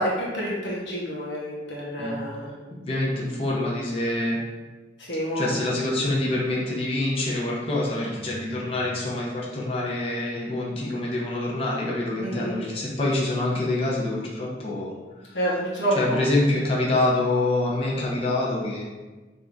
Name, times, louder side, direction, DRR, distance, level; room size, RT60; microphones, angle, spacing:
voice 1, 0.0-2.6 5.0-5.6 12.2-12.6 15.3-16.2, right 1 dB, 85° left, -5 dB, 0.8 m, -28 dB
voice 2, 2.8-4.4 5.3-14.9 16.0-18.8, left 2 dB, 35° left, -4 dB, 0.8 m, -26 dB
3.6 x 2.6 x 3.5 m, 1.2 s
head